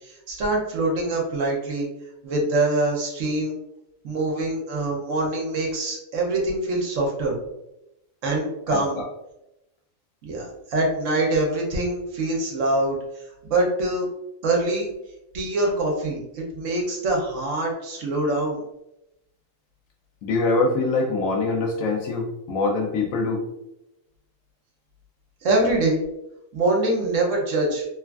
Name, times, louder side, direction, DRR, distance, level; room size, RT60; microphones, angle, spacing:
voice 1, 0.0-1.9 2.2-3.5 4.0-7.4 8.2-9.0 10.2-13.0 13.4-14.1 14.4-14.9 15.3-18.6 25.4-26.0 26.5-27.9, right 2 dB, 70° right, -1 dB, 1.0 m, -24 dB
voice 2, 8.7-9.1 20.2-23.5, left 3 dB, 75° left, 1 dB, 1.0 m, -24 dB
3.0 x 2.4 x 2.3 m, 0.88 s
omnidirectional pair, 1.4 m